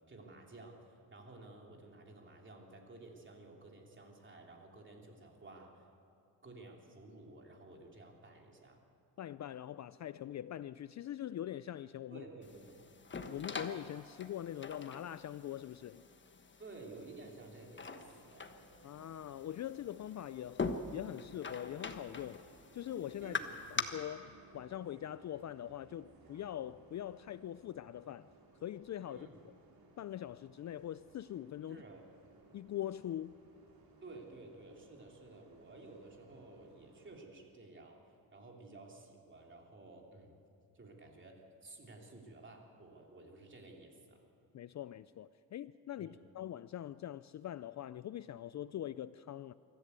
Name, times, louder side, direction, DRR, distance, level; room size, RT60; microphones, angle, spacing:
voice 1, 0.1-0.8 1.1-5.8 6.4-8.8 12.1-12.8 16.6-18.5 23.2-23.8 29.1-29.4 31.7-32.0 34.0-38.0 38.3-40.4 40.7-44.2 46.0-46.2, right 2 dB, 30° right, 3.2 m, -53 dB
voice 2, 9.2-12.3 13.3-16.0 18.8-22.4 22.7-23.4 23.7-28.3 28.6-29.5 30.0-31.8 32.5-33.3 44.5-49.5, left 11 dB, 45° left, 0.4 m, -43 dB
sound 1, 12.4-23.8, left 4 dB, 30° left, 1.3 m, -44 dB
Bus, 18.0-37.2, right 3 dB, 60° right, 3.8 m, -63 dB
24.5 x 14.0 x 8.2 m
cardioid pair, 110°, 39 cm